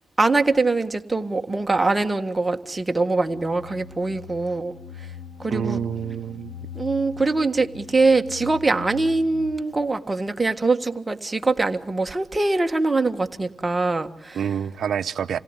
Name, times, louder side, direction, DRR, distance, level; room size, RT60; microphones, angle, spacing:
voice 1, 0.2-4.7 5.0-5.1 5.4-5.8 6.7-14.4, right 3 dB, 15° right, 1.6 m, -23 dB
sound 1, 3.3-9.5, left 6 dB, 80° left, 6.2 m, -41 dB
voice 2, 5.5-6.5 14.3-15.4, right 8 dB, 60° right, 0.9 m, -27 dB
27.5 x 17.0 x 9.9 m
cardioid pair, 90°, 0 cm